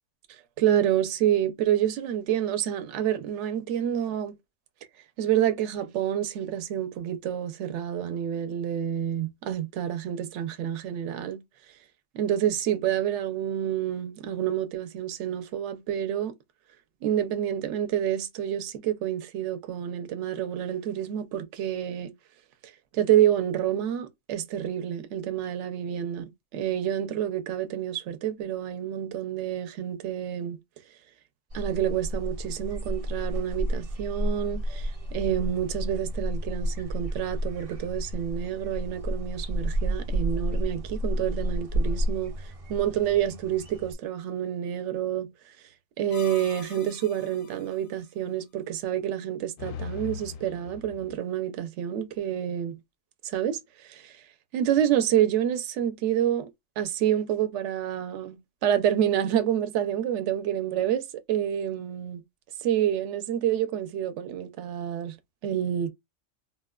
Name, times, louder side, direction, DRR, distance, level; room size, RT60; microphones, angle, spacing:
voice 1, 0.6-4.4 5.2-11.4 12.1-16.3 17.0-22.1 22.9-30.6 31.5-45.3 46.0-52.8 53.2-54.2 54.5-56.5 56.8-62.2 62.6-65.2 65.4-65.9, right 10 dB, 70° right, 0.9 m, -28 dB
sound 1, 31.5-43.9, equal, 40° right, 0.6 m, -31 dB
sound 2, 46.1-47.8 49.6-51.2, left 7 dB, 60° left, 0.6 m, -41 dB
4.0 x 2.2 x 2.2 m
omnidirectional pair, 1.3 m